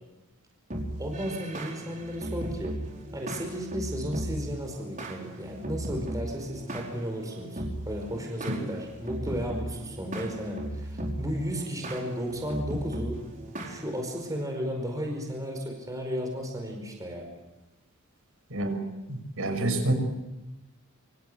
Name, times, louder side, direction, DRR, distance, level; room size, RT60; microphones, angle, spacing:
sound 1, 0.7-14.4, right 1 dB, 35° right, 4.8 m, -37 dB
voice 1, 1.0-2.8 3.1-13.2 13.6-17.3, equal, 15° right, 2 dB, 4.9 m, -34 dB
voice 2, 19.1-19.9, right 1 dB, 65° right, 7 dB, 6.1 m, -27 dB
27.5 x 25.5 x 7.9 m, 1.0 s
head